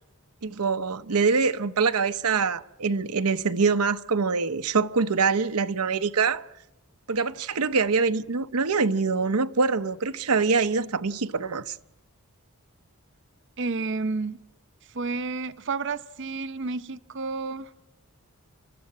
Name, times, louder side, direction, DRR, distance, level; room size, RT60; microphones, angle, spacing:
voice 1, 0.4-6.4 7.1-11.8, right 4 dB, 85° right, 0.8 m, -24 dB
voice 2, 13.6-14.4 14.9-17.7, right 4 dB, 55° right, 0.7 m, -30 dB
29.0 x 13.5 x 9.8 m
head